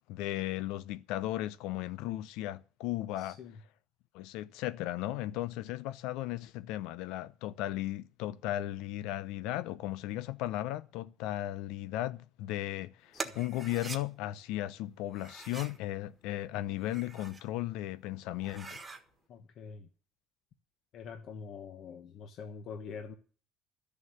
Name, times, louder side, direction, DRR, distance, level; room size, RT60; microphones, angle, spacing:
voice 1, 0.1-3.4 4.1-18.8, left 15 dB, 80° left, 0.7 m, -36 dB
voice 2, 3.2-3.6 13.1-13.3 19.3-19.9 20.9-23.1, left 6 dB, 50° left, 1.2 m, -45 dB
sound 1, 13.1-14.0 15.1-15.8 16.7-17.5 17.9-18.0 18.4-19.0, right 3 dB, 15° right, 1.5 m, -43 dB
13.0 x 6.9 x 9.5 m
cardioid pair, 155°, 0 cm